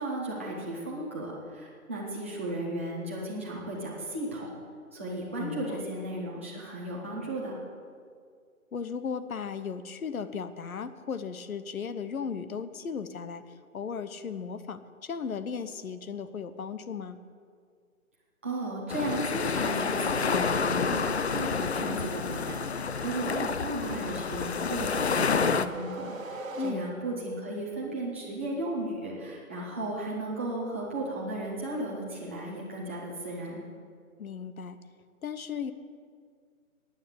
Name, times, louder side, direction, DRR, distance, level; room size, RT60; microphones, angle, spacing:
voice 1, 0.0-4.5 4.9-7.6 18.4-33.6, right 1 dB, 10° right, -6 dB, 0.8 m, -35 dB
voice 2, 5.4-5.8 8.7-17.2 26.5-26.8 34.2-34.8 35.2-35.7, left 6 dB, 70° left, 12 dB, 1.1 m, -36 dB
sound 1, 18.9-25.7, left 5 dB, 50° left, 0.4 m, -29 dB
sound 2, 24.3-27.3, right 2 dB, 65° right, 1.5 m, -41 dB
9.9 x 9.4 x 8.1 m, 2.1 s
hypercardioid pair, 175°, 43 cm